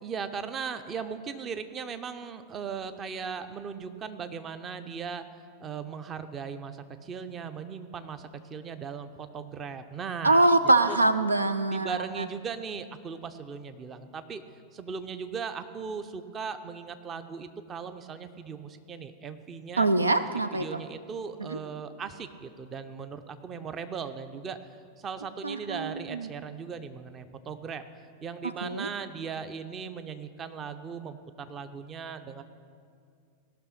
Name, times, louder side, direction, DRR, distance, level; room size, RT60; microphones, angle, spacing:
voice 1, 0.0-5.2 5.6-11.0 11.7-14.4 14.7-19.9 20.5-24.6 25.0-32.4, right 6 dB, 25° right, 10 dB, 0.7 m, -38 dB
voice 2, 10.2-12.3 19.8-20.8 21.5-21.6 25.4-26.2 28.6-28.9, right 2 dB, 80° right, 12 dB, 0.4 m, -24 dB
17.5 x 6.1 x 5.9 m, 2.3 s
figure-of-eight pair, 90°, 0 cm